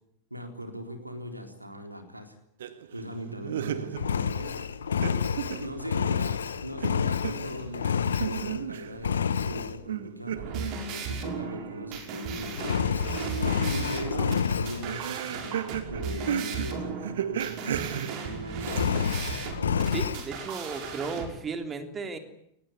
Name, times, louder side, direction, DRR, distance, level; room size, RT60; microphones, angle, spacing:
voice 1, 0.3-2.4 2.9-4.6 5.6-13.0 13.7-19.2, equal, 85° right, 6 dB, 3.9 m, -40 dB
sound 1, 2.6-4.3 4.6-6.4 6.8-9.2 9.9-12.8 13.1-18.8, right 10 dB, 60° right, 1.9 m, -36 dB
Engine, 4.0-8.7 9.0-9.8 12.6-14.8 18.6-20.2, left 7 dB, 70° left, 1.2 m, -29 dB
sound 2, 10.3-21.3, right 5 dB, 40° right, 5.6 m, -36 dB
voice 2, 19.9-22.2, right 4 dB, 20° right, 7 dB, 3.3 m, -35 dB
22.5 x 20.0 x 9.7 m, 0.73 s
figure-of-eight pair, 90°, 0 cm